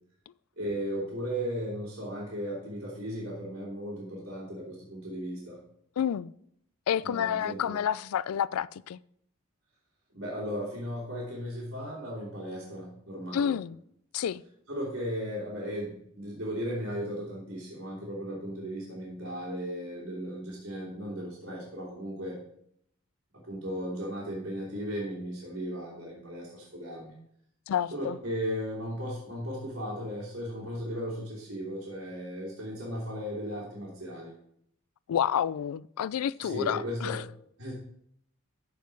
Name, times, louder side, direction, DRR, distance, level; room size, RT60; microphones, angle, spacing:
voice 1, 0.6-5.6 7.0-7.8 10.1-13.6 14.7-22.4 23.4-27.2 27.9-34.3 36.4-37.2 37.6-37.7, equal, 55° right, 2.8 m, -36 dB
voice 2, 6.0-6.3 6.9-9.0 13.3-13.8 14.1-14.4 27.7-28.2 35.1-37.2, left 9 dB, 90° left, 0.3 m, -29 dB
13.5 x 4.8 x 4.6 m
head